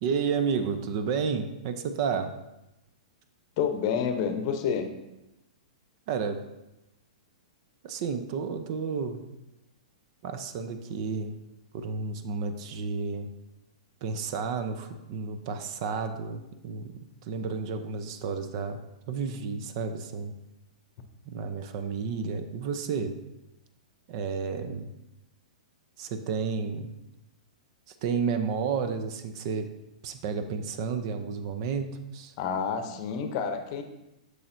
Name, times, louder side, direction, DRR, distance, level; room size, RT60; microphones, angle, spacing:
voice 1, 0.0-2.3 6.1-6.4 7.8-9.2 10.2-11.4 11.7-13.3 14.0-16.9 17.2-18.8 19.1-20.3 21.2-23.1 24.1-24.9 26.0-26.9 27.9-29.7 30.0-32.3, right 5 dB, 50° right, 8 dB, 0.6 m, -31 dB
voice 2, 3.6-4.9 32.4-33.8, left 7 dB, 45° left, 7 dB, 0.7 m, -29 dB
6.9 x 6.4 x 2.7 m, 0.93 s
hypercardioid pair, 115°, 4 cm